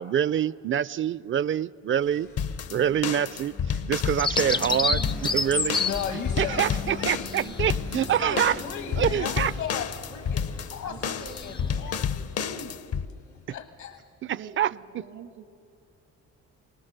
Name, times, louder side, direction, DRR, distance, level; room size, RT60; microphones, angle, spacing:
voice 1, 0.0-2.3 2.7-5.0 5.3-5.8 6.4-8.6 9.0-9.5 14.2-14.7, right 9 dB, 40° right, 0.4 m, -26 dB
sound 1, 2.0-13.7, left 4 dB, 90° left, 6.8 m, -43 dB
sound 2, 2.4-13.0, left 7 dB, 55° left, 0.7 m, -30 dB
Bird vocalization bird call bird song, 4.2-12.0, left 3 dB, 15° left, 0.4 m, -32 dB
voice 2, 4.6-5.3 6.2-7.1 7.4-7.6 10.8-11.9 12.3-12.9 14.3-15.5, right 8 dB, 80° right, 2.1 m, -45 dB
voice 3, 5.8-7.3 7.9-12.7 13.5-14.0, left 7 dB, 70° left, 1.3 m, -37 dB
23.5 x 19.0 x 6.7 m
cardioid pair, 90°, 30 cm